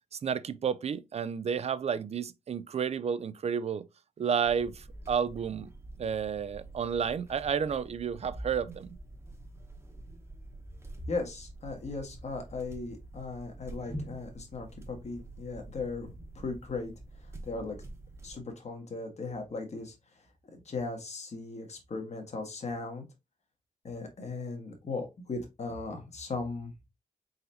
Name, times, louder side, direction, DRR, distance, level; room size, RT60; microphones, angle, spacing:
voice 1, 0.1-3.8 4.2-5.7 6.0-8.9, right 7 dB, 50° right, 0.4 m, -31 dB
sound 1, 4.4-18.4, right 1 dB, 20° right, 1.0 m, -46 dB
voice 2, 11.1-16.1 16.3-16.9 17.4-17.8 18.2-19.9 20.6-23.0 23.8-26.7, left 3 dB, 55° left, 1.4 m, -37 dB
4.1 x 4.0 x 2.6 m
wide cardioid pair, 90°, 14 cm